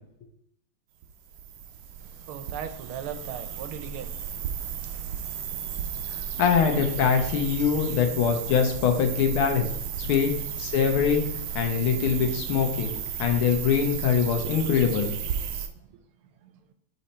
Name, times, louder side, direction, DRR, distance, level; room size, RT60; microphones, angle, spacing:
sound 1, 1.0-15.7, right 8 dB, 70° right, 1.0 m, -34 dB
voice 1, 2.0-6.4 10.9-11.1 11.8-12.1 12.9-13.0 15.7-16.0 16.4-16.5, right 8 dB, 90° right, 1.6 m, -41 dB
voice 2, 6.4-9.7 10.0-10.3 10.6-11.3 11.5-12.9 13.2-15.1, left 7 dB, 80° left, 1.8 m, -23 dB
5.5 x 4.2 x 4.3 m
omnidirectional pair, 2.3 m